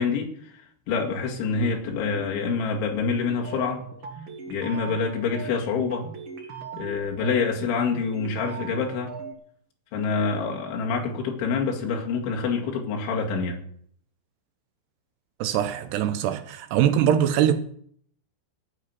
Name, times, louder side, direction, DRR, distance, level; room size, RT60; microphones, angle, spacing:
voice 1, 0.0-3.8 4.5-6.1 6.8-9.1 9.9-13.6, left 5 dB, 75° left, 4.4 m, -26 dB
sound 1, 3.3-9.3, right 5 dB, 60° right, 1.3 m, -39 dB
voice 2, 15.4-17.6, right 10 dB, 85° right, 2.4 m, -22 dB
15.0 x 5.8 x 9.9 m
omnidirectional pair, 5.6 m